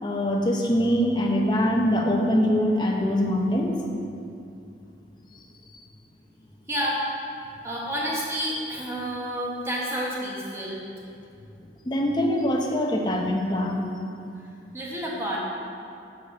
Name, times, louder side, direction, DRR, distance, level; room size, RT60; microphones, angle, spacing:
voice 1, 0.0-3.8 11.8-13.8, equal, 25° left, 0 dB, 0.6 m, -23 dB
voice 2, 6.7-7.0 7.6-10.8 14.7-15.4, equal, 15° right, -4 dB, 1.1 m, -29 dB
6.4 x 4.2 x 6.1 m, 2.5 s
head